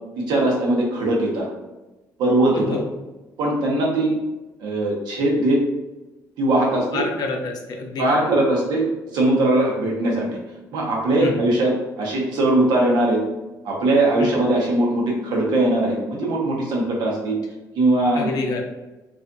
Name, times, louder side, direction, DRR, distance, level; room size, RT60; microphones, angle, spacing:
voice 1, 0.2-1.5 2.2-2.8 3.4-4.1 4.6-5.6 6.4-7.0 8.0-8.8 9.1-10.4 10.7-11.7 12.0-13.2 13.6-17.4 17.8-18.3, right 1 dB, 75° right, -2 dB, 0.7 m, -20 dB
voice 2, 2.5-2.9 6.9-8.3 11.2-11.4 14.2-14.3 18.1-18.6, left 3 dB, 65° left, 2 dB, 0.5 m, -28 dB
2.5 x 2.4 x 2.2 m, 1.1 s
cardioid pair, 85°, 7 cm